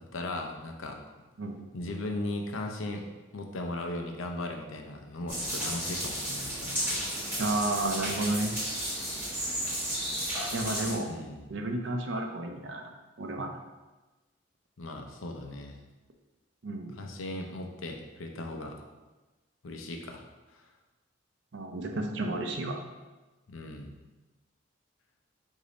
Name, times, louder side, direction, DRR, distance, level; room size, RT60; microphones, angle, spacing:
voice 1, 0.1-1.0 1.7-7.0 11.0-11.5 14.8-15.8 17.0-18.8 19.6-20.2 20.5-20.7 23.5-24.0, left 2 dB, 90° left, 3 dB, 0.6 m, -37 dB
sound 1, 5.3-10.9, equal, 10° right, 1.3 m, -33 dB
voice 2, 7.4-8.5 10.5-11.1 11.5-13.6 16.6-17.0 21.5-22.8, right 2 dB, 70° right, 3 dB, 0.6 m, -32 dB
5.0 x 2.7 x 3.9 m, 1.1 s
head